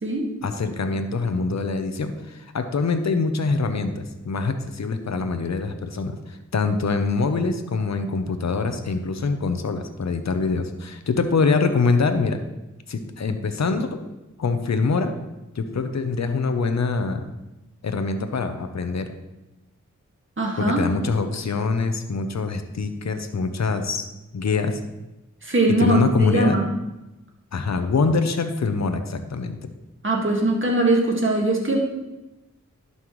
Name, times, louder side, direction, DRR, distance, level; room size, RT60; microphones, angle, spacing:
voice 1, 0.4-12.4 12.9-14.0 14.4-15.1 15.5-17.3 17.8-19.0 20.6-24.1 24.3-24.8 25.8-26.6 27.5-29.6, left 4 dB, 60° left, 8 dB, 0.8 m, -24 dB
voice 2, 20.4-20.8 25.4-26.6 30.0-31.8, right 2 dB, 40° right, 0 dB, 1.9 m, -21 dB
11.5 x 5.6 x 3.1 m, 0.99 s
cardioid pair, 45°, 30 cm